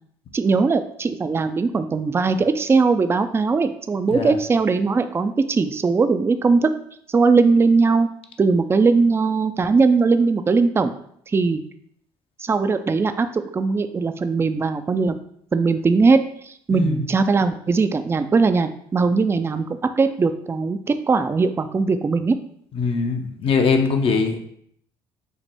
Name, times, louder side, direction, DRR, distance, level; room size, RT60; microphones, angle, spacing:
voice 1, 0.3-6.7 7.1-8.1 8.4-10.9 11.3-11.6 12.4-15.1 15.5-16.2 16.4-19.7 20.0-22.4, right 4 dB, 20° right, 10 dB, 0.3 m, -19 dB
voice 2, 16.7-17.0 22.8-24.4, left 5 dB, 50° left, 5 dB, 0.6 m, -21 dB
5.3 x 2.1 x 3.4 m, 0.67 s
hypercardioid pair, 60°, 12 cm